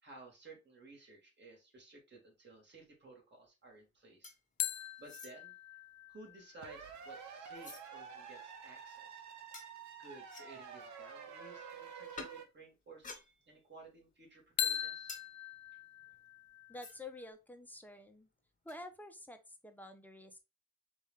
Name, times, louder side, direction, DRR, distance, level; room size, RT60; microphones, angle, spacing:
voice 1, 0.0-4.3 4.7-9.2 9.6-13.1 13.5-15.2, right 2 dB, 35° right, -1 dB, 2.8 m, -56 dB
sound 1, 4.2-4.7 5.0-5.4 6.1-7.9 8.4-8.5 9.5-9.7 10.3-10.6 12.2-12.4 12.9-13.8 14.1-17.2 17.5-17.6 17.8-18.0 18.7-18.8, left 3 dB, 25° left, 1.5 m, -53 dB
sound 2, 4.6-8.1 14.6-17.3, left 11 dB, 65° left, 0.5 m, -42 dB
sound 3, 6.6-12.4, right 6 dB, 70° right, 1.2 m, -49 dB
voice 2, 16.7-18.3 18.6-20.4, left 2 dB, 5° left, 6 dB, 0.9 m, -49 dB
4.4 x 3.1 x 3.6 m, 0.25 s
cardioid pair, 90°, 30 cm